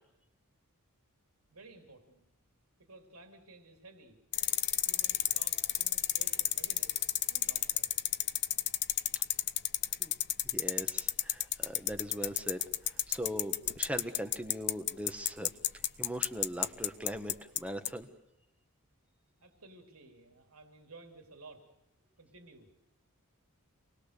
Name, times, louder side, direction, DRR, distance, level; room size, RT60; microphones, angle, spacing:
voice 1, 1.5-2.2 2.8-4.2 4.9-7.0 7.3-7.9 19.4-21.6 22.2-22.7, right 2 dB, 75° right, 5 dB, 3.5 m, -55 dB
sound 1, 4.3-17.6 17.9-18.0, left 13 dB, 50° left, 0.9 m, -30 dB
voice 2, 10.4-12.6 12.9-15.5 16.0-18.1, equal, 5° right, 8 dB, 1.6 m, -40 dB
28.0 x 20.0 x 6.9 m, 0.88 s
head